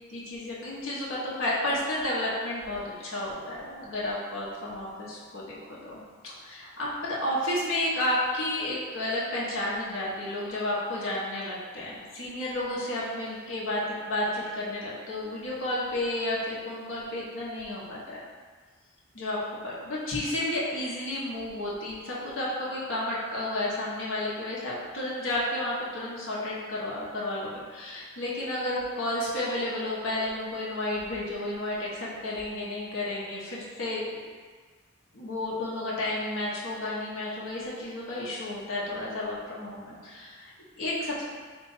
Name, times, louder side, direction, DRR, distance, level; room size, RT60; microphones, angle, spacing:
voice 1, 0.1-18.2 19.1-19.4 19.6-34.3 35.1-41.2, left 1 dB, 80° left, -6 dB, 1.0 m, -32 dB
3.9 x 2.4 x 4.0 m, 1.5 s
head